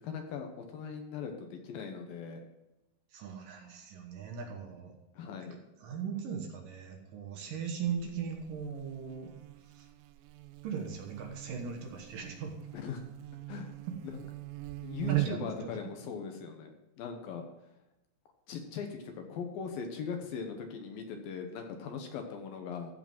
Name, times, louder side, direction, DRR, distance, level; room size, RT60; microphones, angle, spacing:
voice 1, 0.0-2.4 5.1-5.6 12.7-13.0 13.5-13.7 14.0-14.2 14.8-17.5 18.5-22.9, left 6 dB, 70° left, 4 dB, 2.8 m, -40 dB
voice 2, 3.1-4.9 5.5-9.3 9.7-9.9 10.6-12.6 15.1-15.8, right 6 dB, 65° right, 3 dB, 2.6 m, -39 dB
Buzz, 7.8-15.6, right 17 dB, 85° right, 2.0 m, -41 dB
14.5 x 4.9 x 5.9 m, 0.93 s
omnidirectional pair, 4.5 m